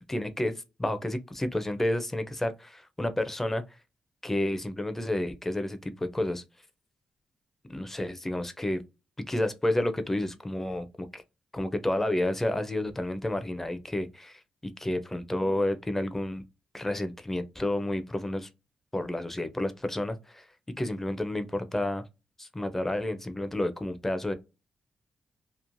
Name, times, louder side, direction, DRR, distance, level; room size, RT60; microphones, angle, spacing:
voice 1, 0.1-0.5 0.8-3.6 4.2-6.4 7.7-8.8 9.3-11.2 11.5-14.4 14.8-16.4 16.7-18.5 18.9-20.4 20.8-22.0 22.4-24.3, left 1 dB, 15° left, 0.4 m, -30 dB
3.0 x 2.0 x 2.5 m
cardioid pair, 100°, 2 cm